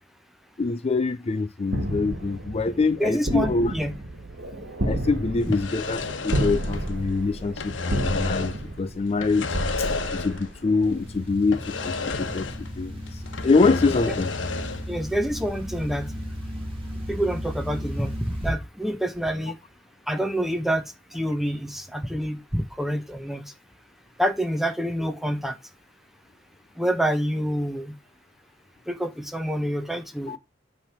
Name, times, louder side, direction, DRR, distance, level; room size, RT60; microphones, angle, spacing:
voice 1, 0.6-3.7 4.8-12.5 12.8-14.3 30.3-30.4, left 3 dB, 35° left, 0.4 m, -25 dB
sound 1, 1.7-11.0, right 1 dB, 65° right, 1.6 m, -31 dB
voice 2, 3.0-4.0 14.1-14.2 14.9-16.1 17.1-19.6 20.1-20.8 21.1-23.5 24.2-25.6 26.8-28.0 28.9-30.4, equal, ahead, 0.9 m, -27 dB
sound 2, 5.4-7.2 7.4-8.7 9.2-10.6 10.8-10.9 11.5-12.8 13.1-14.9, left 3 dB, 80° left, 1.1 m, -31 dB
sound 3, 10.8-18.5, equal, 30° right, 2.0 m, -35 dB
8.9 x 3.4 x 5.8 m
head